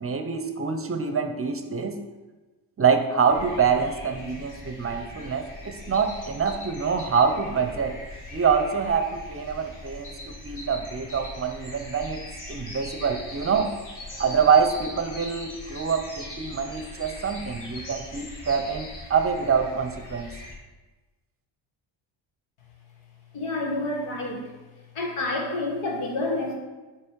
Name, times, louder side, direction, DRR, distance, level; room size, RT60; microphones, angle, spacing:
voice 1, 0.0-2.0 2.8-8.0 8.3-12.2 12.5-13.7 14.2-20.3, right 6 dB, 30° right, 7 dB, 0.6 m, -25 dB
sound 1, 3.3-20.5, left 2 dB, 40° left, 1.8 m, -40 dB
voice 2, 23.3-24.5 24.9-26.5, left 2 dB, 90° left, 0 dB, 1.4 m, -28 dB
7.1 x 3.1 x 4.6 m, 1.2 s
cardioid pair, 80°, 49 cm